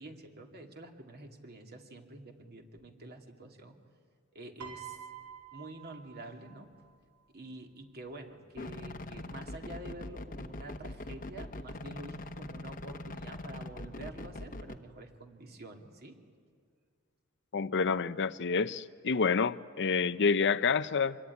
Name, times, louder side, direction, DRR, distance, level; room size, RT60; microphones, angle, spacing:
voice 1, 0.0-3.8 4.3-5.0 5.5-6.7 7.3-16.2, right 2 dB, 45° right, 3 dB, 2.5 m, -48 dB
Piano, 4.6-7.0 8.0-8.3, right 9 dB, 75° right, 2.3 m, -48 dB
sound 1, 8.6-14.8, left 1 dB, 40° left, 1.1 m, -42 dB
voice 2, 17.5-21.2, left 5 dB, 55° left, 15 dB, 0.7 m, -28 dB
25.5 x 22.5 x 9.8 m, 2.1 s
head